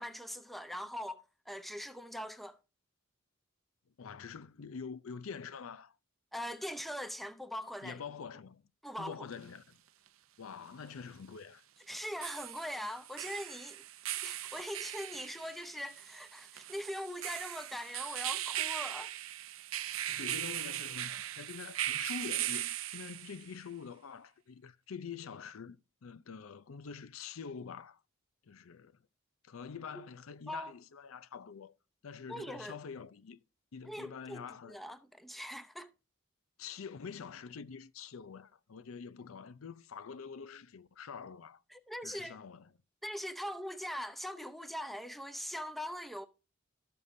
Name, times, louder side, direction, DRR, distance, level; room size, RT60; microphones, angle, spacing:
voice 1, 0.0-2.6 6.3-8.0 8.8-9.3 11.9-13.8 14.2-19.1 30.5-30.7 32.3-32.8 33.8-35.9 41.7-42.4 43.0-46.3, equal, ahead, 0.7 m, -41 dB
voice 2, 4.0-6.0 7.8-8.6 9.0-9.8 10.4-11.6 20.1-28.0 28.4-28.9 29.4-31.8 32.0-33.4 33.7-34.8 36.6-41.6 42.0-42.7, left 6 dB, 85° left, 0.5 m, -46 dB
sound 1, 9.3-9.4 11.9-23.5, right 13 dB, 80° right, 0.6 m, -39 dB
12.5 x 6.8 x 2.6 m
head